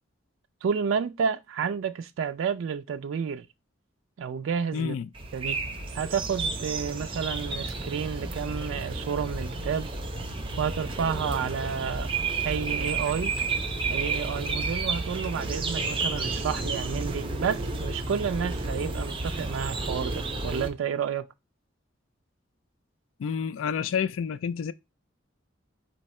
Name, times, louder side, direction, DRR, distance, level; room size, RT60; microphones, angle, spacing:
voice 1, 0.6-3.5 4.2-5.0 5.3-5.6 5.9-9.9 10.6-12.1 12.4-13.3 13.9-21.3, right 7 dB, 90° right, 0.3 m, -30 dB
voice 2, 4.7-5.1 23.2-24.7, left 6 dB, 85° left, 0.3 m, -29 dB
sound 1, 5.1-20.7, right 3 dB, 25° right, 0.6 m, -31 dB
4.5 x 2.8 x 4.1 m
head